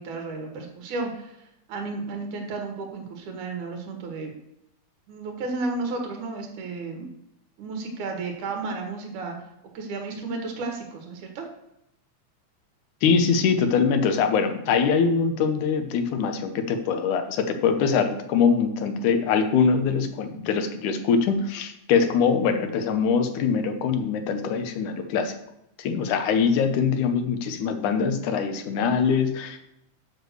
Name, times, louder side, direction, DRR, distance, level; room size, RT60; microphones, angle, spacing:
voice 1, 0.0-4.3 5.1-7.1 7.6-9.4 9.7-11.5, right 3 dB, 85° right, 2 dB, 2.9 m, -33 dB
voice 2, 13.0-25.4 25.8-29.7, left 6 dB, 85° left, 7 dB, 2.4 m, -23 dB
7.2 x 6.3 x 6.6 m, 0.80 s
omnidirectional pair, 3.4 m